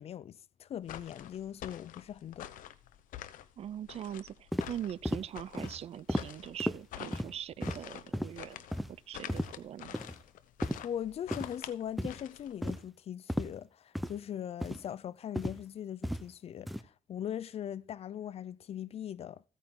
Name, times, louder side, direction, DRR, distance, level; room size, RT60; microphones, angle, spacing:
voice 1, 0.0-2.5 10.8-19.4, left 10 dB, 50° left, 0.5 m, -40 dB
sound 1, 0.8-12.8, left 11 dB, 90° left, 0.9 m, -47 dB
voice 2, 3.6-8.6 8.9-10.0, right 10 dB, 50° right, 0.5 m, -42 dB
sound 2, 4.5-4.7 5.0-5.2 5.6-5.7 6.1-6.3 6.6-6.8 7.1-7.3 7.6-7.8 8.1-8.3 8.7-8.9 9.3-9.5 9.9-10.1 10.6-10.8 11.3-11.5 12.0-12.2 12.6-12.8 13.3-13.5 13.9-14.1 14.6-14.8 15.4-15.6 16.0-16.2 16.7-16.8, equal, ahead, 0.7 m, -33 dB
15.5 x 9.0 x 3.8 m
cardioid pair, 140°, 13 cm